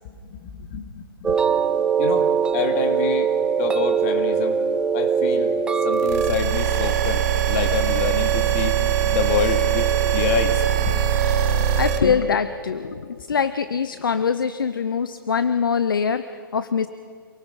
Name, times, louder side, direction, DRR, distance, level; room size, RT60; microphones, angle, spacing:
voice 1, 0.0-1.4 1.7-4.6 4.9-11.0 11.5-11.8, left 6 dB, 35° left, 6 dB, 2.3 m, -28 dB
sound 1, 1.2-6.3, right 6 dB, 5° right, 0.5 m, -21 dB
sound 2, 6.0-12.0, right 10 dB, 45° right, 5.4 m, -21 dB
voice 2, 11.8-16.9, left 6 dB, 65° left, 13 dB, 0.8 m, -23 dB
28.0 x 18.5 x 5.3 m, 2.2 s
figure-of-eight pair, 125°, 12 cm